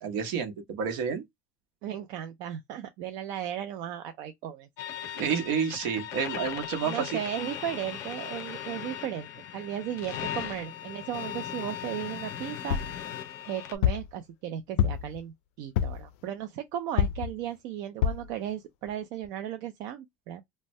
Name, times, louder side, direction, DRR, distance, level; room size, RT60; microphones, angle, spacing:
voice 1, 0.0-1.2 5.1-7.2, right 6 dB, 70° right, 0.8 m, -30 dB
voice 2, 1.8-4.7 6.8-12.8 13.5-20.4, right 10 dB, 55° right, 0.4 m, -36 dB
sound 1, 4.8-13.8, left 10 dB, 45° left, 0.6 m, -38 dB
sound 2, 12.7-13.0 13.8-14.1 14.8-15.2 15.8-16.1 17.0-17.3 18.0-18.3 18.9-19.0 19.2-19.3, left 9 dB, 90° left, 0.3 m, -26 dB
2.6 x 2.1 x 3.1 m
cardioid pair, 160°, 7 cm